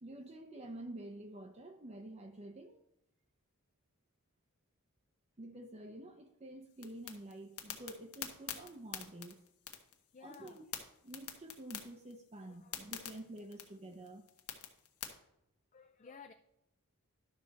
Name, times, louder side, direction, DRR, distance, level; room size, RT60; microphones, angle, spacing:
voice 1, 0.0-2.8 5.4-9.4 10.2-10.7 11.0-14.2, right 1 dB, 30° right, 0.6 m, -49 dB
sound 1, 6.7-15.1, left 10 dB, 90° left, 1.2 m, -47 dB
voice 2, 10.1-10.7 12.4-13.1 15.7-16.3, left 5 dB, 35° left, 0.4 m, -56 dB
11.5 x 6.3 x 4.0 m
head